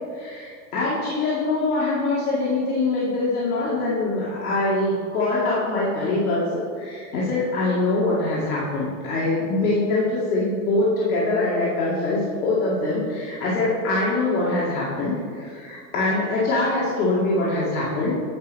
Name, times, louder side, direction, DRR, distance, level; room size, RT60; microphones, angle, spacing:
voice 1, 0.1-18.1, left 2 dB, 90° left, -7 dB, 2.2 m, -23 dB
10.0 x 4.1 x 6.2 m, 2.2 s
supercardioid pair, 140°, 43 cm